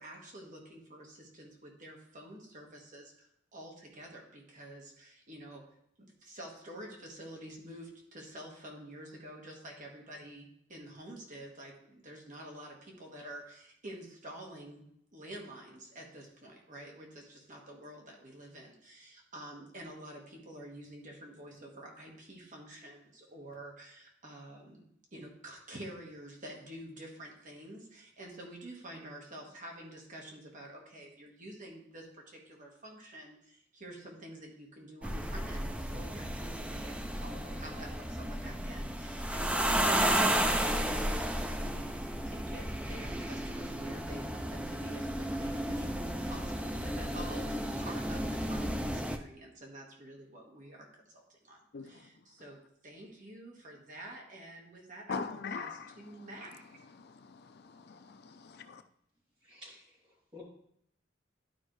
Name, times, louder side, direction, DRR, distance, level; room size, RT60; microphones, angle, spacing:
voice 1, 0.0-14.9 15.1-24.8 25.1-50.9 51.1-56.8, right 1 dB, 40° right, 1.6 m, -49 dB
sound 1, 35.0-49.2, right 1 dB, 5° right, 0.5 m, -33 dB
voice 2, 55.1-55.8 57.0-58.8, left 5 dB, 55° left, 0.5 m, -41 dB
voice 3, 59.4-60.4, left 2 dB, 25° right, 2.9 m, -52 dB
12.0 x 5.3 x 3.2 m
head